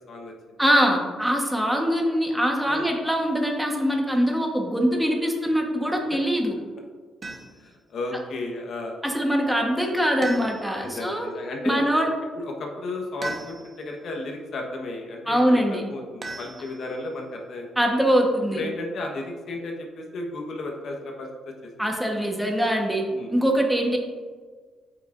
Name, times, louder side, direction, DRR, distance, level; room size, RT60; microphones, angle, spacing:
voice 1, 0.1-0.6 2.7-2.9 7.6-9.0 10.7-11.9 12.4-17.8 18.5-21.5 23.1-23.3, left 2 dB, 60° left, 1 dB, 1.2 m, -34 dB
voice 2, 0.6-6.5 9.0-11.3 11.6-12.1 15.3-15.8 17.8-18.6 21.8-23.0 23.3-24.0, equal, 5° right, 1 dB, 1.2 m, -23 dB
sound 1, 7.2-7.7 10.2-10.9 13.2-13.9 16.2-17.1, right 2 dB, 40° right, 1.0 m, -37 dB
8.2 x 5.9 x 2.6 m, 1.5 s
cardioid pair, 90°, 0 cm